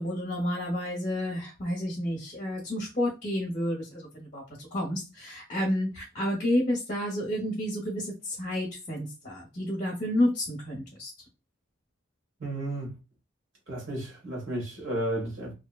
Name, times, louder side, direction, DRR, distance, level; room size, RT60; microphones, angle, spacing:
voice 1, 0.0-11.1, left 1 dB, 35° left, 0.7 m, -30 dB
voice 2, 12.4-12.9 13.7-15.5, right 1 dB, 65° right, 1.3 m, -33 dB
2.7 x 2.1 x 2.2 m
head